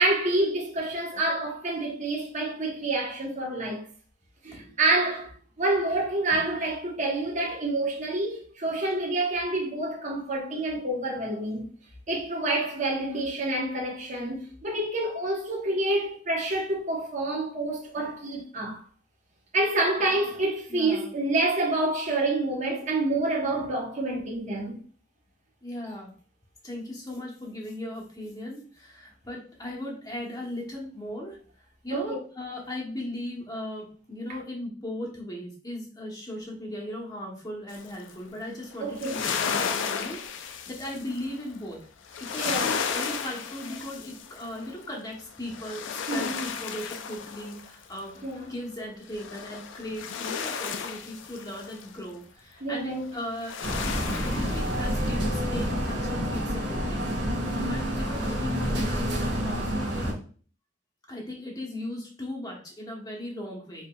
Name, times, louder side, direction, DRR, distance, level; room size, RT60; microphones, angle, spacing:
voice 1, 0.0-3.9 4.4-11.7 12.1-18.8 19.5-24.8 31.9-32.2 38.8-39.2 42.4-42.7 46.1-46.5 48.2-48.5 52.6-53.1, right 2 dB, 40° right, 0.9 m, -28 dB
voice 2, 20.7-21.1 25.6-26.1 26.6-41.8 42.2-48.2 48.5-57.0 57.4-60.2 61.1-63.9, left 1 dB, 20° left, 0.8 m, -38 dB
sound 1, 37.7-38.1 38.7-41.4 42.1-44.8 45.3-48.3 49.1-51.9 53.2-55.2, left 6 dB, 85° left, 0.4 m, -34 dB
sound 2, 53.6-60.1, equal, 70° right, 1.2 m, -28 dB
4.8 x 2.9 x 2.2 m
head